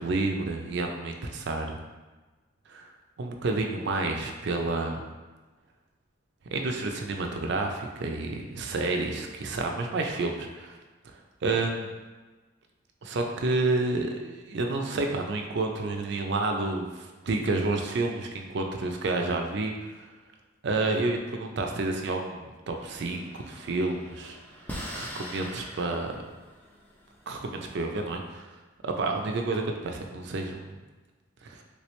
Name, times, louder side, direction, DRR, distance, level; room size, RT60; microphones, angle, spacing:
voice 1, 0.0-1.8 2.7-2.9 3.2-5.0 6.5-10.8 11.4-11.9 13.0-20.0 20.6-24.4 24.9-26.2 27.3-28.5 28.8-30.7 31.4-31.6, right 3 dB, 55° right, 3 dB, 0.4 m, -30 dB
sound 1, 22.8-28.3, equal, 10° left, 0.4 m, -43 dB
3.2 x 3.0 x 3.1 m, 1.2 s
head